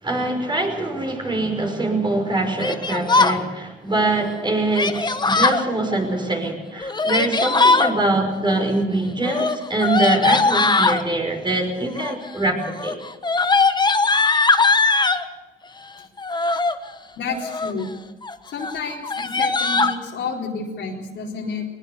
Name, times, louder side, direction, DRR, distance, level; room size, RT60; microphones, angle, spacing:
voice 1, 0.0-13.0, right 2 dB, 25° right, 3 dB, 5.6 m, -23 dB
Yell, 2.6-3.4 4.7-5.6 6.8-7.9 9.2-11.0 11.9-12.3 12.6-15.2 16.2-16.8 17.3-17.8 18.2-18.4 18.6-18.7 19.0-20.0, left 3 dB, 20° left, 1.2 m, -19 dB
voice 2, 17.2-17.9 18.5-21.7, left 4 dB, 65° left, -1 dB, 4.2 m, -30 dB
20.0 x 20.0 x 6.9 m, 1.2 s
cardioid pair, 90°, 20 cm